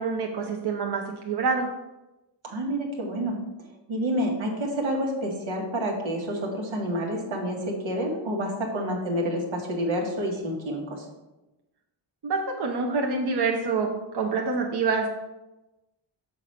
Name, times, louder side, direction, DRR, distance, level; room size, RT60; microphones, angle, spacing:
voice 1, 0.0-1.7 12.2-15.1, right 4 dB, 60° right, 1 dB, 1.0 m, -26 dB
voice 2, 2.4-11.1, equal, 90° right, 0 dB, 1.8 m, -29 dB
7.0 x 5.0 x 5.8 m, 1.0 s
wide cardioid pair, 120°, 45 cm